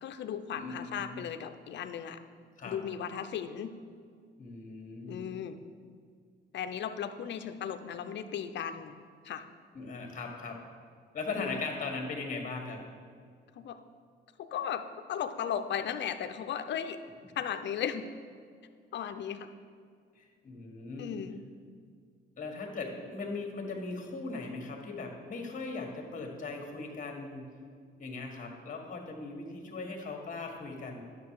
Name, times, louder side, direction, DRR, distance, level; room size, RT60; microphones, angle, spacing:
voice 1, 0.0-2.2 2.6-3.7 5.1-5.6 6.5-9.0 9.2-9.5 11.4-11.6 13.6-13.8 14.4-14.8 15.1-17.0 17.4-18.0 18.9-19.5 21.0-21.4, left 8 dB, 65° left, 9 dB, 0.6 m, -36 dB
voice 2, 0.5-1.2 2.6-2.8 4.4-5.3 9.7-10.6 11.1-12.8 20.2-21.1 22.4-27.5 28.0-31.0, left 3 dB, 40° left, 2 dB, 1.7 m, -39 dB
10.0 x 6.6 x 4.7 m, 2.2 s
cardioid pair, 90°, 20 cm